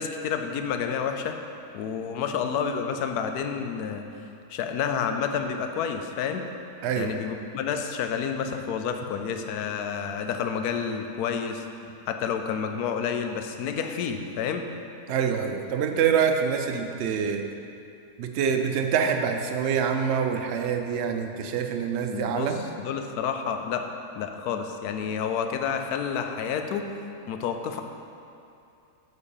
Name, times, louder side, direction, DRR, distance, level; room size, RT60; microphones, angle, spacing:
voice 1, 0.0-1.4 1.7-4.0 4.5-6.4 6.9-11.6 12.1-14.6 22.1-23.9 24.1-26.9 27.3-27.8, left 7 dB, 75° left, 6 dB, 1.1 m, -29 dB
voice 2, 6.8-7.1 15.1-17.4 18.2-22.6, right 7 dB, 60° right, 5 dB, 0.7 m, -25 dB
8.5 x 4.5 x 7.0 m, 2.6 s
omnidirectional pair, 1.7 m